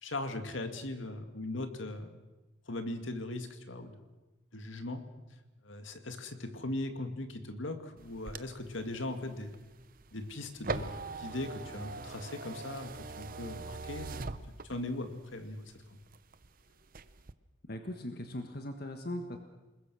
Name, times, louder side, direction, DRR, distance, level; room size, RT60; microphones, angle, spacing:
voice 1, 0.0-2.2 2.7-4.0 4.5-5.0 5.6-9.6 10.1-14.2 14.5-15.7, left 2 dB, 70° left, 7 dB, 2.2 m, -39 dB
sound 1, 8.0-15.0 15.5-16.5 16.8-17.3, right 3 dB, 45° right, 0.8 m, -42 dB
voice 2, 17.7-19.4, left 1 dB, 50° left, 5 dB, 1.5 m, -39 dB
28.5 x 21.0 x 6.4 m, 1.1 s
head